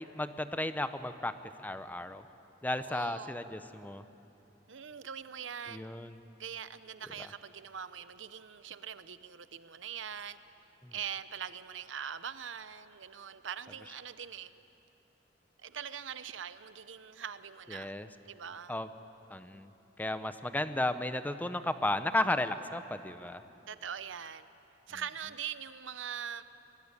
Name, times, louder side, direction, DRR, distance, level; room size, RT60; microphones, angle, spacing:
voice 1, 0.0-2.2 2.6-4.0 5.7-6.2 10.8-10.9 17.7-18.1 18.7-18.9 19.3-19.7 20.0-23.4, left 1 dB, 10° left, 10 dB, 0.8 m, -34 dB
voice 2, 2.8-3.3 4.7-5.9 6.4-10.4 10.9-14.5 15.6-17.9 18.3-18.7 23.7-24.5 24.9-26.4, right 8 dB, 80° right, 13 dB, 0.8 m, -42 dB
24.5 x 20.5 x 9.8 m, 2.9 s
head